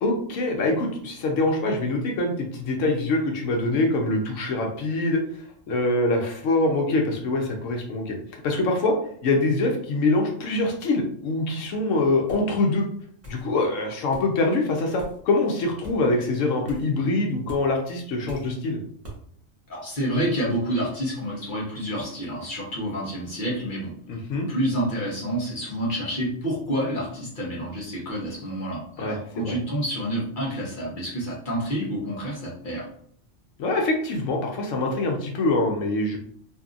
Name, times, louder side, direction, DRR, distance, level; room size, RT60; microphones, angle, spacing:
voice 1, 0.0-9.0 9.2-12.8 13.3-18.8 24.1-24.5 29.0-29.6 33.6-36.2, left 2 dB, 75° left, 1 dB, 0.9 m, -24 dB
sound 1, 12.3-12.5 13.2-13.5 14.1-14.3 15.0-15.2 15.8-16.0 16.7-16.9 17.5-17.6 18.3-18.5 19.0-19.2, right 1 dB, 15° right, 0.7 m, -41 dB
voice 2, 19.7-23.9 24.5-32.9, equal, 45° left, -5 dB, 1.0 m, -28 dB
2.7 x 2.5 x 2.4 m, 0.63 s
omnidirectional pair, 1.3 m